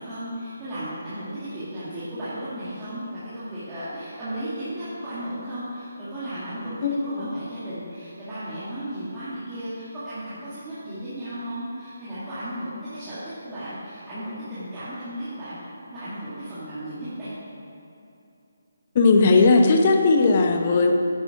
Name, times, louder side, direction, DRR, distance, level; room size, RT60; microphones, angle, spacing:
voice 1, 0.0-15.6 15.9-17.3, right 1 dB, 10° right, -15 dB, 2.0 m, -34 dB
voice 2, 6.8-7.3 18.9-20.9, left 3 dB, 30° left, 3 dB, 0.8 m, -18 dB
10.5 x 9.8 x 4.7 m, 2.8 s
hypercardioid pair, 175°, 0 cm